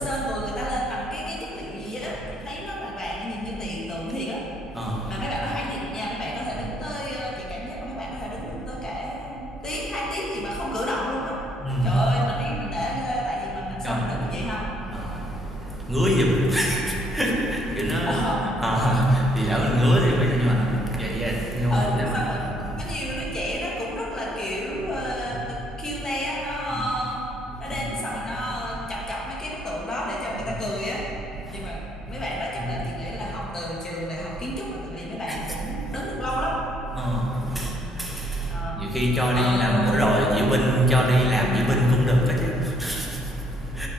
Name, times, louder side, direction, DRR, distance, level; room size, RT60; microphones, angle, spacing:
voice 1, 0.0-4.4 5.0-11.4 11.8-14.7 18.1-18.5 21.7-22.5 22.8-27.3 27.6-31.1 31.5-36.6 37.4-37.7 38.4-38.8 39.3-40.1, equal, 25° left, -4 dB, 2.0 m, -30 dB
voice 2, 4.7-5.2 6.5-6.7 11.6-12.0 13.8-14.2 14.9-18.2 18.6-22.9 25.2-25.3 26.7-26.8 27.6-27.9 31.4-31.7 32.1-32.2 32.6-32.7 35.3-35.4 36.9-43.9, equal, ahead, -3 dB, 1.6 m, -23 dB
9.5 x 5.8 x 4.3 m, 2.8 s
cardioid pair, 100°, 2 cm